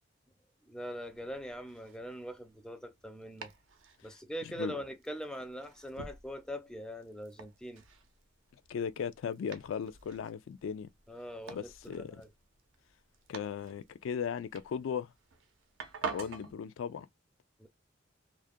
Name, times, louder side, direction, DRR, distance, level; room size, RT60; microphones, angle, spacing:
voice 1, 0.6-3.5 4.0-7.8 11.1-12.3 17.6-17.7, equal, 5° left, 0.4 m, -42 dB
Domestic sounds home sounds, 1.0-16.5, right 5 dB, 80° right, 0.6 m, -48 dB
voice 2, 4.4-4.8 8.7-10.9 11.5-12.2 13.3-15.1 16.0-17.1, left 7 dB, 85° left, 0.3 m, -37 dB
2.4 x 2.1 x 2.4 m
head